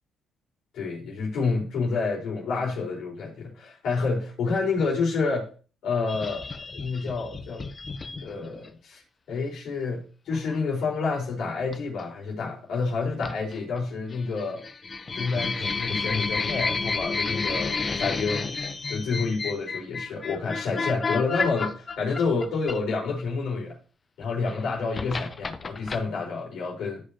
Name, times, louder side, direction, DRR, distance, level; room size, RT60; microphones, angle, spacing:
voice 1, 0.7-5.5 5.8-7.7 8.2-9.0 9.3-14.6 15.2-18.5 18.9-23.8 24.2-27.0, left 4 dB, 75° left, -3 dB, 4.7 m, -29 dB
sound 1, 6.1-8.7 10.3-10.6 11.7-12.0 13.2-13.8 14.1-23.2 24.2-26.0, left 4 dB, 35° left, 0.9 m, -31 dB
15.0 x 5.1 x 3.0 m, 0.38 s
cardioid pair, 90°, 0 cm